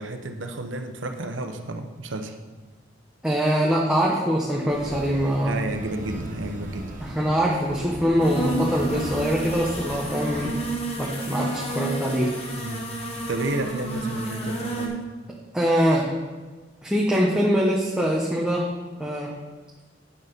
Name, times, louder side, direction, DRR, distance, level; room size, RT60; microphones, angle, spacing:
voice 1, 0.0-2.4 5.4-6.9 12.5-12.9 13.3-15.0, right 2 dB, 85° right, 6 dB, 0.9 m, -31 dB
voice 2, 3.2-5.5 7.0-10.5 11.0-12.3 15.5-16.1 16.8-18.7 19.0-19.3, equal, 5° right, -4 dB, 0.9 m, -23 dB
sound 1, 4.7-10.5, right 1 dB, 45° right, 1.6 m, -38 dB
sound 2, 8.2-14.9, right 1 dB, 35° left, 1.4 m, -31 dB
9.0 x 6.5 x 5.2 m, 1.4 s
head